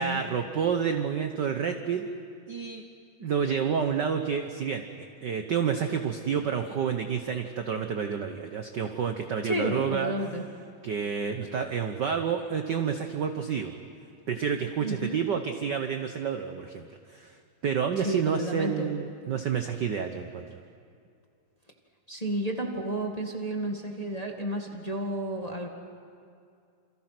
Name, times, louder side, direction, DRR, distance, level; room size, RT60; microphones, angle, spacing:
voice 1, 0.0-2.1 2.5-2.8 3.2-4.8 5.2-10.1 10.8-13.7 14.3-17.4 17.6-20.6, right 7 dB, 65° right, 6 dB, 1.1 m, -29 dB
voice 2, 9.4-10.4 14.8-15.2 18.0-18.9 22.1-25.7, right 1 dB, 15° left, 1 dB, 1.5 m, -31 dB
28.5 x 27.5 x 6.1 m, 2.4 s
omnidirectional pair, 3.3 m